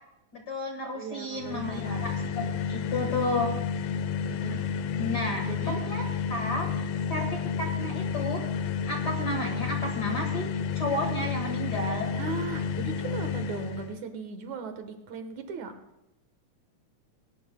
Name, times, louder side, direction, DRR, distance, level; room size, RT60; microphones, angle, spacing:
voice 1, 0.3-3.5 5.0-6.7 7.1-7.3 7.6-8.4 8.9-10.5 10.7-12.1, left 1 dB, 40° left, 2 dB, 1.7 m, -32 dB
voice 2, 0.9-2.3 4.3-4.7 5.5-5.8 12.2-15.7, right 5 dB, 75° right, 7 dB, 2.6 m, -38 dB
sound 1, 1.4-14.0, left 6 dB, 80° left, 1.3 m, -31 dB
19.0 x 18.5 x 2.2 m, 0.86 s
omnidirectional pair, 3.4 m